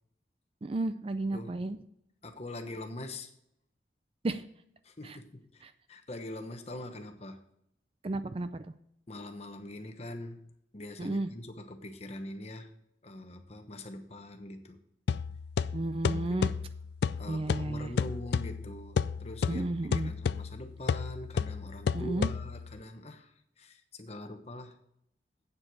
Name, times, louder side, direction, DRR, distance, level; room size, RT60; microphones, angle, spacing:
voice 1, 0.6-1.8 4.2-4.5 5.0-5.2 5.6-5.7 8.0-8.7 11.0-11.3 15.7-16.6 17.3-17.9 19.5-20.1 21.9-22.3, right 2 dB, 30° right, 0.4 m, -33 dB
voice 2, 2.2-3.3 4.8-5.6 5.9-7.4 9.1-10.5 10.7-12.7 13.0-14.8 16.1-16.6 17.2-19.7 19.9-23.3 23.6-24.8, left 1 dB, 35° left, 1.0 m, -43 dB
sound 1, 15.1-22.8, left 6 dB, 65° left, 0.3 m, -32 dB
8.6 x 7.5 x 6.2 m
head